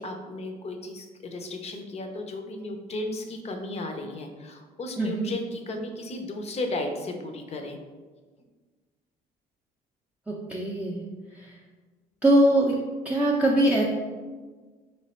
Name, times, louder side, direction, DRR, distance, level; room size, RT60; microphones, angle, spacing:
voice 1, 0.0-7.8, left 2 dB, 40° left, 5 dB, 0.6 m, -34 dB
voice 2, 5.0-5.3 10.3-11.0 11.3-11.5 12.2-12.8 13.0-13.8, right 1 dB, 10° right, -4 dB, 0.5 m, -22 dB
3.3 x 3.2 x 4.3 m, 1.4 s
cardioid pair, 110°, 17 cm